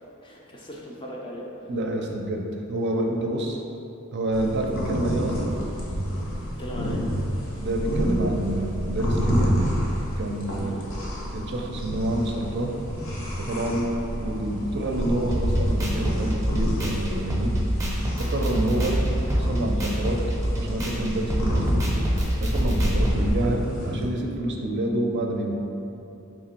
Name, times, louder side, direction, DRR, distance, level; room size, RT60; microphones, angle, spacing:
voice 1, 0.2-1.5 6.6-7.0 10.6-10.8 23.1-23.3, equal, 25° left, -2 dB, 0.5 m, -38 dB
voice 2, 1.7-3.6 4.1-5.5 7.6-9.5 10.2-10.8 11.3-12.7 13.4-13.9 14.2-17.5 18.2-19.0 19.3-20.2 20.5-21.9 22.4-25.5, right 1 dB, 55° right, 1 dB, 0.4 m, -28 dB
sound 1, 4.3-24.0, equal, 60° left, 0.8 m, -29 dB
sound 2, 15.3-23.3, equal, 15° right, 0.6 m, -26 dB
3.6 x 2.9 x 4.3 m, 2.8 s
head